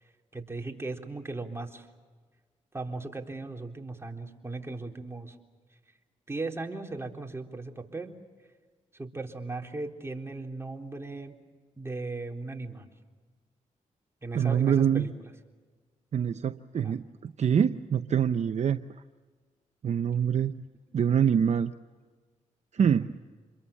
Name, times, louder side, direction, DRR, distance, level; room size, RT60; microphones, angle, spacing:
voice 1, 0.3-1.9 2.7-5.4 6.3-8.1 8.9-11.4 11.8-12.9 14.2-15.3 16.8-17.0 22.8-23.1, right 3 dB, 20° right, 2 dB, 3.7 m, -37 dB
voice 2, 14.3-15.1 16.1-18.8 19.8-20.6 20.9-21.7 22.7-23.2, right 8 dB, 55° right, 10 dB, 0.7 m, -25 dB
28.0 x 22.5 x 7.3 m, 1.5 s
cardioid pair, 60°, 14 cm